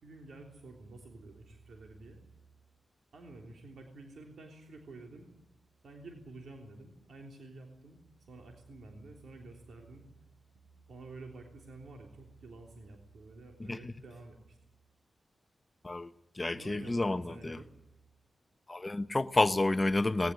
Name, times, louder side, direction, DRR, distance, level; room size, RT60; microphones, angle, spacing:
voice 1, 0.0-2.2 3.1-5.3 5.8-8.0 8.3-10.1 10.7-14.6 16.5-17.7, right 2 dB, 85° right, 2 dB, 3.4 m, -50 dB
voice 2, 16.4-17.6 18.7-20.3, left 2 dB, 25° left, 11 dB, 1.1 m, -29 dB
20.0 x 18.5 x 9.8 m, 0.86 s
cardioid pair, 75°, 0 cm